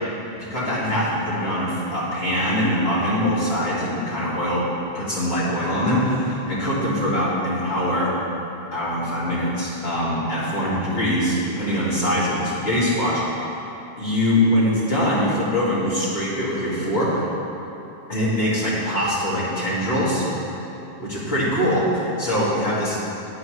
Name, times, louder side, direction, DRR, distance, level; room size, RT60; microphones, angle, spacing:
voice 1, 0.3-4.6 4.9-8.1 8.7-13.2 14.0-17.1 18.1-20.2 21.0-23.0, equal, 65° left, -8 dB, 2.4 m, -23 dB
9.8 x 8.8 x 3.2 m, 3.0 s
omnidirectional pair, 1.1 m